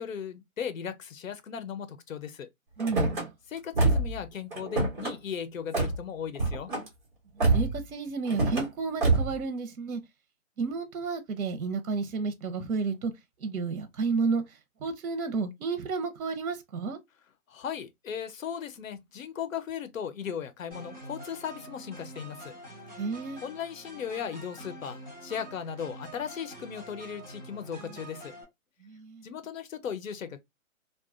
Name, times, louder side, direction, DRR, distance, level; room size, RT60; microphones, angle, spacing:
voice 1, 0.0-2.5 3.5-6.7 17.5-22.5 23.4-28.3 29.2-30.4, left 8 dB, 65° left, 0.6 m, -37 dB
Car / Slam, 2.8-3.3 3.7-4.2 4.5-5.1 5.7-6.0 6.4-6.9 7.4-7.8 8.3-8.7 9.0-9.4, right 2 dB, 35° right, 1.1 m, -26 dB
voice 2, 2.8-3.3 7.3-10.0 10.6-13.1 13.4-17.0 23.0-23.4 28.8-29.3, right 4 dB, 85° right, 0.7 m, -31 dB
sound 1, 20.7-28.4, right 1 dB, 10° right, 0.7 m, -46 dB
2.6 x 2.3 x 2.4 m
hypercardioid pair, 175°, 43 cm